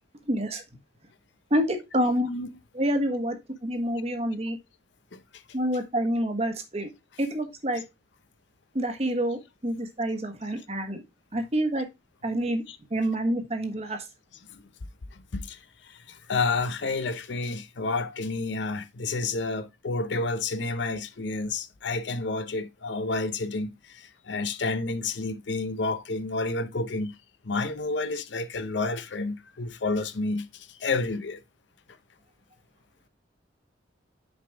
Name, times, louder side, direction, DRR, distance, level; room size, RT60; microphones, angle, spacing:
voice 1, 0.3-0.6 1.5-2.3 2.7-3.4 3.6-4.6 5.5-6.9 7.2-7.8 8.7-11.0 11.3-11.9 12.2-12.6 12.9-14.0, right 1 dB, 35° right, 1.2 m, -27 dB
voice 2, 16.1-23.7 24.3-27.1 27.4-30.5 30.8-31.4, left 3 dB, 75° left, 0.7 m, -30 dB
6.2 x 5.2 x 3.4 m
head